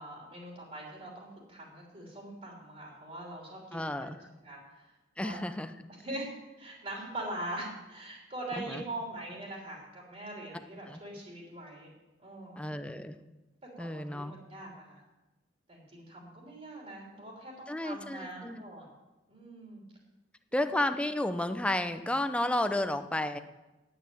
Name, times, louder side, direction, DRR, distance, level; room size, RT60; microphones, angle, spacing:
voice 1, 0.0-4.1 4.4-4.9 5.2-5.4 6.0-6.3 6.6-11.9 12.2-12.6 13.6-15.0 15.7-18.9 19.3-19.8 20.5-20.8, right 1 dB, 40° right, -1 dB, 3.3 m, -42 dB
voice 2, 3.7-4.2 5.2-5.7 8.6-8.8 10.9-11.0 12.6-13.2 13.8-14.3 17.7-18.6 20.5-23.4, left 1 dB, 5° left, 9 dB, 0.6 m, -32 dB
9.3 x 9.1 x 9.1 m, 1.1 s
head